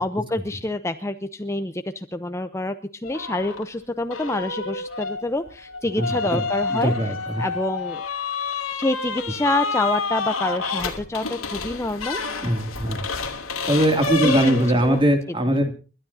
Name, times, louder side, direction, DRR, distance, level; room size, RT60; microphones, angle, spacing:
voice 1, 0.0-2.7 3.0-7.1 7.4-8.0 8.7-12.4 14.2-15.0, left 2 dB, 15° left, 9 dB, 0.6 m, -27 dB
sound 1, 3.0-3.7 4.1-15.0, left 4 dB, 90° left, 2.6 m, -29 dB
voice 2, 6.0-6.4 6.7-7.5 12.4-13.1 13.7-15.7, equal, 25° right, 5 dB, 2.5 m, -21 dB
30.0 x 12.5 x 2.7 m, 0.36 s
head